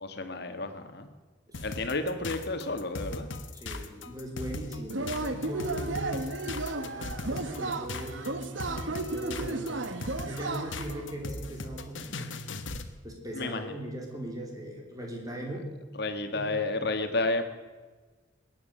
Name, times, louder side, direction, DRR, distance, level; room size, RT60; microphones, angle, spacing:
voice 1, 0.0-1.1 1.6-3.3 13.3-13.6 16.0-17.4, left 2 dB, 60° left, 7 dB, 1.7 m, -31 dB
sound 1, 1.5-12.9, left 2 dB, 85° left, 1.3 m, -38 dB
voice 2, 3.5-9.9 10.2-12.3 13.0-15.7 16.3-16.5, right 1 dB, 20° right, 0 dB, 3.3 m, -39 dB
Yell / Cheering, 4.9-11.0, right 2 dB, 80° right, 1.2 m, -34 dB
21.5 x 9.4 x 6.7 m, 1.3 s
head